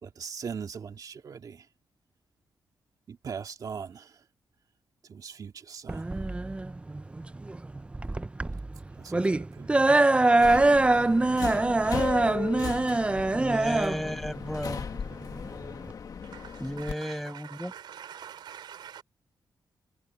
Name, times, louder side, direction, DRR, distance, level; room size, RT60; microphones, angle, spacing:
voice 1, 0.0-1.6 3.1-4.2 5.1-6.0 9.0-9.8, right 6 dB, 55° right, 2.6 m, -40 dB
sound 1, 5.9-15.9, right 2 dB, 15° right, 0.5 m, -24 dB
Subway metro underground, 10.3-16.9, left 6 dB, 55° left, 1.9 m, -37 dB
voice 2, 13.3-14.9 16.6-17.7, equal, ahead, 5.6 m, -34 dB
voice 3, 16.2-19.0, right 9 dB, 90° right, 4.2 m, -45 dB
cardioid pair, 115°, 8 cm